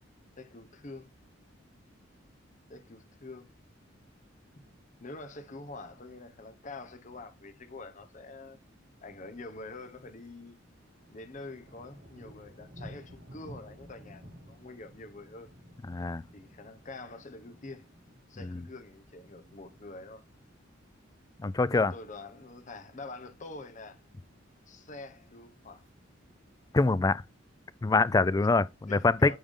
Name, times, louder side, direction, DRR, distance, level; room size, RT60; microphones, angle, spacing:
voice 1, 0.4-1.1 2.7-3.5 5.0-8.6 9.0-10.6 11.1-15.5 16.3-17.9 18.3-20.2 21.7-24.0 24.7-25.8 28.9-29.4, left 2 dB, 40° left, 1.0 m, -46 dB
Thunder, 9.8-10.3 10.6-21.0 21.3-21.7 22.1-22.6 22.9-23.0 23.1-23.2 23.6-24.2 24.9-25.9, equal, 65° right, 2.8 m, -54 dB
voice 2, 15.9-16.2 18.5-18.6 21.4-21.9 26.7-27.2 27.8-29.4, left 3 dB, 20° left, 0.3 m, -25 dB
8.8 x 3.5 x 3.7 m
head